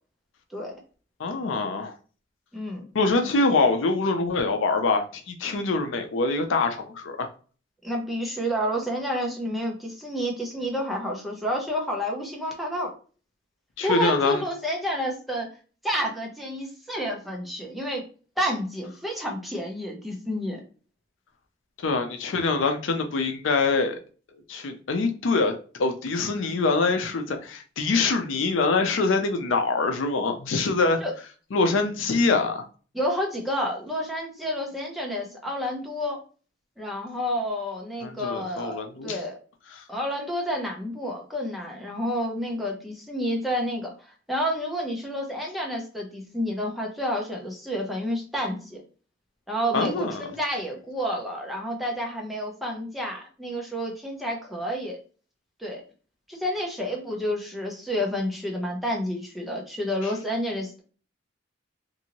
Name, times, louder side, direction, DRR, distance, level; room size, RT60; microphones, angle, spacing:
voice 1, 1.2-1.9 2.9-7.3 13.8-14.4 21.8-24.0 24.5-25.5 25.8-31.0 31.5-32.6 38.0-39.2 49.7-50.2, left 3 dB, 80° left, 0.5 m, -24 dB
voice 2, 2.5-2.9 7.8-12.9 13.8-15.5 15.8-18.0 18.4-20.6 31.0-31.1 32.9-36.2 36.8-39.4 39.9-43.9 44.3-48.8 49.5-55.0 55.6-55.8 56.3-60.8, equal, ahead, 0.6 m, -29 dB
2.7 x 2.6 x 2.8 m
head